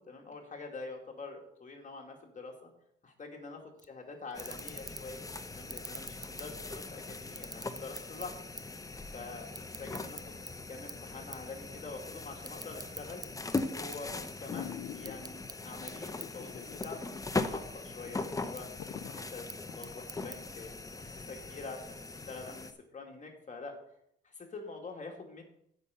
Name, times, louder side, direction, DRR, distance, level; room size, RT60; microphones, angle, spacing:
voice 1, 0.1-2.7 3.0-3.6 3.9-8.3 8.7-10.4 10.7-13.2 13.7-18.7 19.0-23.7 24.2-25.4, left 3 dB, 40° left, 2 dB, 2.2 m, -46 dB
sound 1, 3.8-3.9 4.3-5.2 5.6-6.9 7.3-8.8 9.1-10.5 10.9-11.1 11.3-11.5 11.9-13.3 13.6-14.5 14.9-15.6 15.9-16.0 16.2-16.3 16.8-16.9 17.3-17.8 18.3-18.6 19.3-20.4, right 4 dB, 20° right, 0.5 m, -45 dB
sound 2, 4.3-22.7, left 3 dB, 15° left, 0.7 m, -40 dB
sound 3, 13.3-13.6 14.1-14.2 14.5-15.5 16.1-16.8 17.1-17.2 17.7-17.8 18.1-19.9 20.4-20.5, left 10 dB, 60° left, 0.6 m, -44 dB
8.2 x 5.6 x 6.9 m, 0.75 s
cardioid pair, 90°, 20 cm